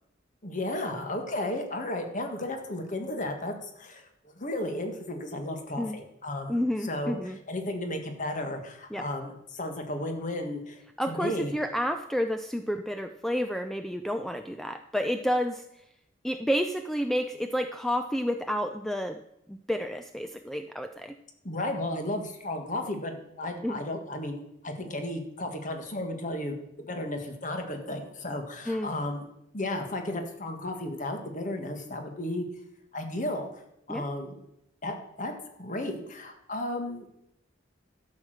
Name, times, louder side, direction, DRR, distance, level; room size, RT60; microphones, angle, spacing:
voice 1, 0.4-4.1 4.4-7.2 7.5-11.5 21.4-29.3 29.5-32.4 32.9-33.5 33.9-34.4 34.8-35.3 35.6-37.0, left 1 dB, 40° left, 5 dB, 1.7 m, -34 dB
voice 2, 6.5-7.4 8.9-9.1 11.0-15.6 16.2-19.2 19.5-21.1 23.6-23.8 28.7-28.9 33.9-34.1, equal, ahead, 7 dB, 0.4 m, -30 dB
12.0 x 6.5 x 6.4 m, 0.81 s
head